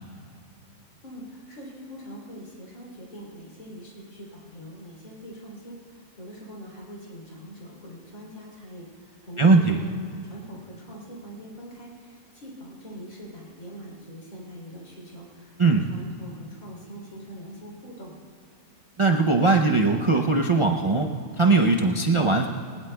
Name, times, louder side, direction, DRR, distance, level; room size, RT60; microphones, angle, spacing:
voice 1, 1.0-18.2, equal, 70° left, -3 dB, 3.7 m, -43 dB
voice 2, 9.4-9.8 15.6-15.8 19.0-21.1 21.4-22.5, right 3 dB, 50° right, 1 dB, 0.3 m, -20 dB
20.0 x 19.5 x 2.3 m, 2.3 s
omnidirectional pair, 1.5 m